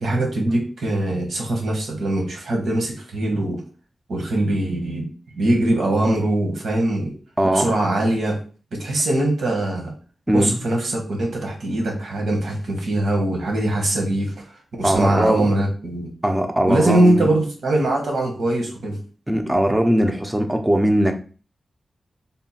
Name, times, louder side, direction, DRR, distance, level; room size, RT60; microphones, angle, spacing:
voice 1, 0.0-3.6 4.1-5.1 5.3-7.1 7.5-8.4 8.8-9.9 10.3-14.3 14.8-16.1 16.7-19.0, right 1 dB, 85° right, 1 dB, 1.3 m, -22 dB
voice 2, 7.4-7.7 10.3-10.6 14.8-15.5 16.2-17.3 19.3-21.2, equal, 10° right, 5 dB, 0.5 m, -20 dB
3.7 x 2.2 x 4.1 m, 0.37 s
wide cardioid pair, 160°, 0 cm